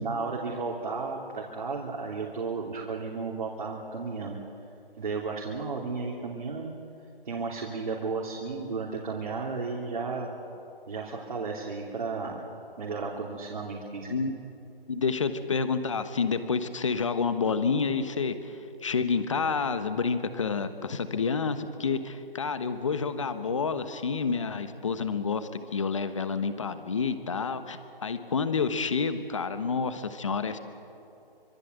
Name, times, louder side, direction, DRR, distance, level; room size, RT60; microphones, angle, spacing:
voice 1, 0.0-4.4 5.0-6.7 7.2-10.3 10.9-12.4 12.8-14.3, right 4 dB, 50° right, -3 dB, 3.2 m, -33 dB
voice 2, 14.9-30.6, left 5 dB, 30° left, 11 dB, 1.2 m, -29 dB
25.5 x 22.5 x 8.1 m, 2.7 s
hypercardioid pair, 175°, 30 cm